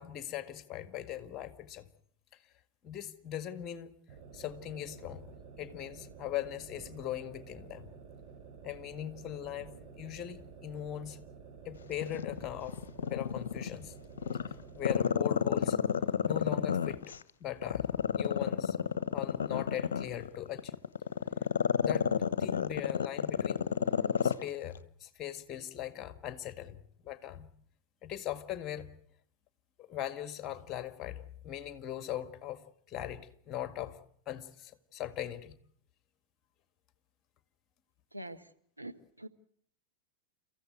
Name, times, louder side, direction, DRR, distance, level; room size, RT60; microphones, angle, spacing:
voice 1, 0.0-1.9 2.8-3.9 4.3-5.3 5.6-8.0 8.6-11.2 11.7-13.9 14.7-15.8 16.2-17.0 17.4-17.9 18.1-18.8 19.1-20.8 21.8-22.1 22.4-23.7 24.2-27.5 28.0-28.9 29.8-34.0 34.3-35.5, left 11 dB, 30° left, 1.8 m, -40 dB
sound 1, 4.1-15.1, right 5 dB, 35° right, 4.4 m, -51 dB
Growling, 12.0-13.8 14.2-17.2 17.6-24.4 24.7-24.8, left 7 dB, 65° left, 1.0 m, -30 dB
voice 2, 38.1-38.4 38.8-39.3, right 1 dB, 85° right, 1.5 m, -44 dB
30.0 x 15.0 x 9.4 m
figure-of-eight pair, 90°, 0 cm